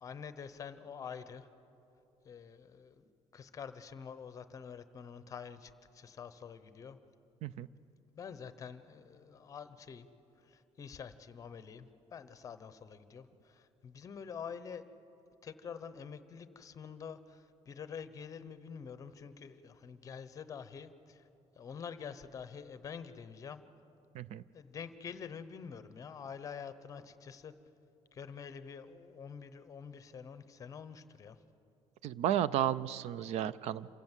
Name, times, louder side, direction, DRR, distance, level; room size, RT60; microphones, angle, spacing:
voice 1, 0.0-1.5 2.2-7.0 8.2-10.1 10.4-14.8 15.4-21.2 21.5-23.6 24.5-27.5 28.1-31.4, left 6 dB, 30° left, 12 dB, 0.8 m, -47 dB
voice 2, 32.0-33.9, right 11 dB, 70° right, 19 dB, 0.5 m, -33 dB
27.5 x 16.0 x 7.4 m, 2.9 s
cardioid pair, 180°, 11 cm